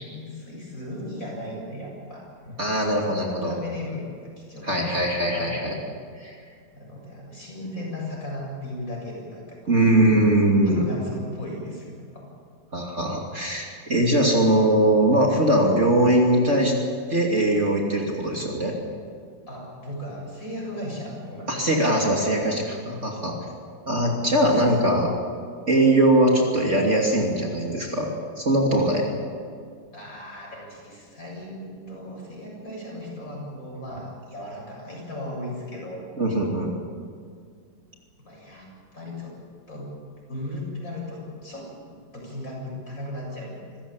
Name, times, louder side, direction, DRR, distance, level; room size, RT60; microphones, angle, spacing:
voice 1, 0.0-2.3 2.8-5.8 6.7-10.0 10.7-12.3 19.5-21.7 24.8-25.1 29.0-29.3 29.9-36.0 38.2-39.4 39.7-39.9 40.3-43.8, left 1 dB, 45° left, -2 dB, 8.1 m, -37 dB
voice 2, 2.6-3.5 4.6-5.8 6.2-6.4 9.7-10.8 12.7-16.8 17.1-18.8 21.5-23.3 23.9-25.1 25.7-28.1 28.4-29.0 36.2-36.7, right 1 dB, 40° right, -1 dB, 3.0 m, -21 dB
26.5 x 15.5 x 8.7 m, 2.1 s
omnidirectional pair, 2.0 m